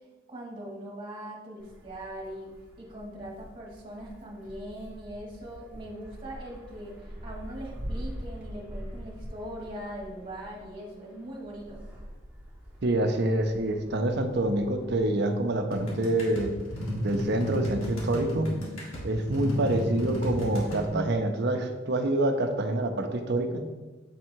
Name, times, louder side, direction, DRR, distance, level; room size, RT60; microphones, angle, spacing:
voice 1, 0.3-11.8, right 1 dB, 25° right, -2 dB, 1.5 m, -41 dB
Wind, 1.6-16.5, equal, 5° right, 1.4 m, -44 dB
voice 2, 12.8-16.5 17.0-18.5 19.0-23.7, right 1 dB, 55° right, 6 dB, 0.6 m, -27 dB
sound 1, 15.7-20.9, equal, 85° left, 1.8 m, -32 dB
7.3 x 3.6 x 4.5 m, 1.2 s
head